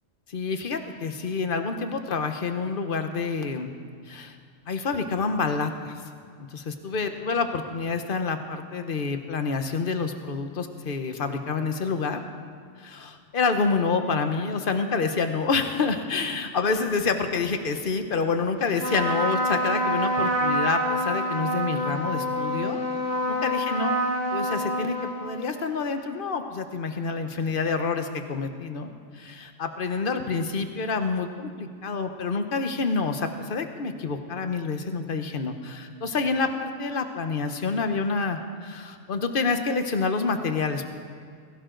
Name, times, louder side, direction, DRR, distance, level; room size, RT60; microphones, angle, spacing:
voice 1, 0.3-3.7 4.1-4.3 4.7-6.0 6.4-12.2 12.8-22.8 23.3-24.0 24.3-24.9 25.2-40.9, left 4 dB, 45° left, 7 dB, 1.2 m, -28 dB
Trumpet, 18.7-25.6, equal, 70° right, 2.7 m, -27 dB
21.0 x 17.0 x 3.9 m, 2.1 s
omnidirectional pair, 1.3 m